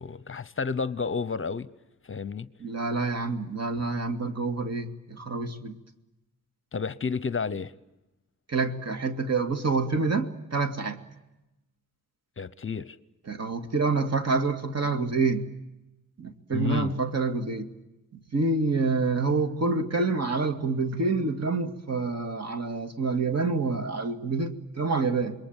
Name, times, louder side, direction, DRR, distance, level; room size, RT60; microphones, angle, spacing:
voice 1, 0.0-1.7 2.0-2.5 6.7-7.7 12.4-13.0 16.5-16.9, left 5 dB, 40° left, 0.9 m, -31 dB
voice 2, 2.6-5.8 8.5-11.0 13.3-15.5 16.2-17.7 18.3-25.3, right 3 dB, 50° right, 2.5 m, -27 dB
27.5 x 22.0 x 9.0 m
cardioid pair, 95°, 33 cm